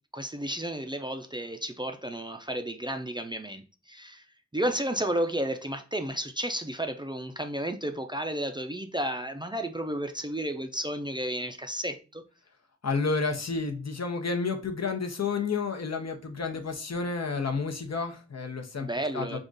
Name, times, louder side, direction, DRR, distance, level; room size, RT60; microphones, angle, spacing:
voice 1, 0.1-3.6 3.9-4.2 4.5-12.2 18.8-19.4, right 1 dB, 15° right, 0.4 m, -32 dB
voice 2, 12.8-18.9 19.1-19.4, left 4 dB, 65° left, 0.8 m, -30 dB
3.7 x 2.4 x 3.8 m
wide cardioid pair, 50°, 29 cm